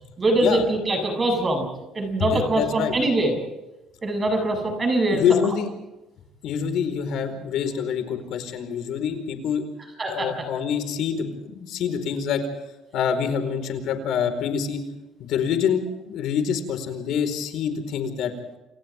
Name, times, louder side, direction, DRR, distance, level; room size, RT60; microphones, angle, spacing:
voice 1, 0.2-1.7 1.9-3.3 4.0-5.2 10.0-10.5, right 1 dB, 20° right, 3 dB, 7.2 m, -23 dB
voice 2, 2.2-3.0 5.1-5.7 6.4-9.6 10.1-12.4 12.9-14.8 15.2-18.6, left 7 dB, 60° left, 7 dB, 4.7 m, -26 dB
29.5 x 28.0 x 3.6 m, 0.99 s
cardioid pair, 170°, 0 cm